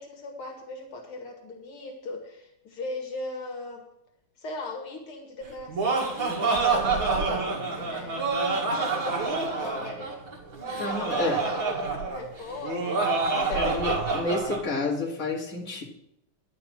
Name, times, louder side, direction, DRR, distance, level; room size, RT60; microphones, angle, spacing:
voice 1, 0.0-3.8 4.4-8.2 8.6-10.2 10.9-13.1 13.6-14.3, left 2 dB, 80° left, 2 dB, 2.6 m, -39 dB
Laughter, 5.5-14.6, right 4 dB, 65° right, 2.8 m, -27 dB
voice 2, 10.8-11.4 13.5-15.8, left 2 dB, 40° left, -2 dB, 2.6 m, -29 dB
11.0 x 6.0 x 7.0 m, 0.77 s
omnidirectional pair, 2.4 m